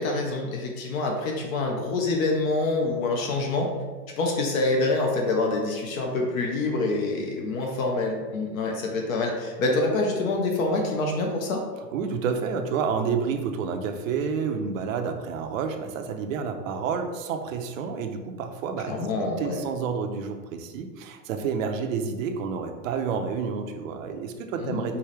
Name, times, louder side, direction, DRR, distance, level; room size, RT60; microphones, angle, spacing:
voice 1, 0.0-3.7 4.2-11.7 18.9-19.6 24.6-25.0, left 2 dB, 55° left, 1 dB, 0.9 m, -26 dB
voice 2, 11.9-19.1 19.4-25.0, right 6 dB, 55° right, 5 dB, 0.6 m, -29 dB
4.7 x 2.7 x 3.3 m, 1.4 s
hypercardioid pair, 140°, 49 cm